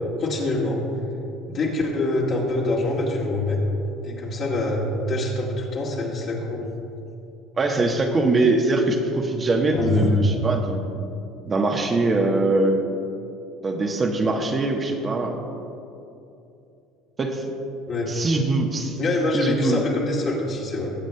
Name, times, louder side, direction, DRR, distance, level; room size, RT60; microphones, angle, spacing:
voice 1, 0.2-0.8 1.5-3.6 4.0-6.7 9.7-10.1 17.9-18.1 19.0-20.9, left 2 dB, 50° left, -4 dB, 2.1 m, -25 dB
voice 2, 7.6-10.8 11.5-12.8 13.6-15.4 17.2-17.4 18.1-19.0 19.3-19.8, right 2 dB, 30° right, 2 dB, 1.1 m, -22 dB
19.0 x 7.7 x 2.3 m, 2.7 s
hypercardioid pair, 80°, 0 cm